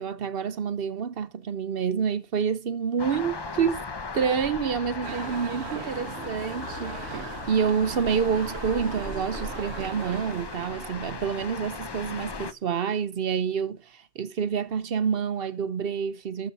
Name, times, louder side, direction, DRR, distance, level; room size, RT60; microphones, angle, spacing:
voice 1, 0.0-3.8 4.1-16.5, right 6 dB, 65° right, 1.0 m, -28 dB
sound 1, 3.0-12.5, left 4 dB, 30° left, 0.5 m, -37 dB
sound 2, 5.0-11.2, right 8 dB, 80° right, 1.0 m, -40 dB
12.0 x 7.5 x 4.0 m
omnidirectional pair, 1.1 m